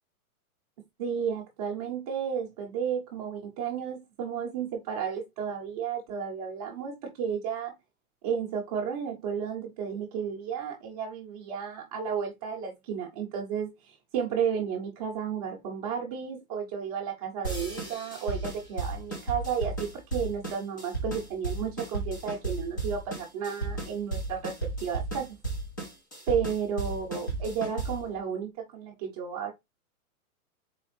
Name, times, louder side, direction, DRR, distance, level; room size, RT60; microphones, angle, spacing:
voice 1, 1.0-7.7 8.2-25.4 26.3-29.5, right 7 dB, 25° right, 0.6 m, -33 dB
sound 1, 17.4-28.1, right 3 dB, 15° left, 0.4 m, -34 dB
4.1 x 3.4 x 3.1 m
hypercardioid pair, 155°, 44 cm